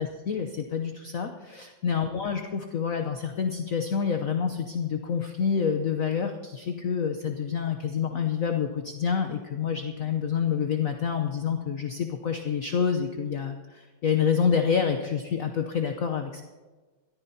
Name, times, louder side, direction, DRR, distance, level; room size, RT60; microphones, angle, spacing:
voice 1, 0.0-16.4, left 7 dB, 60° left, 6 dB, 0.9 m, -28 dB
22.0 x 14.0 x 2.8 m, 1.3 s
omnidirectional pair, 2.2 m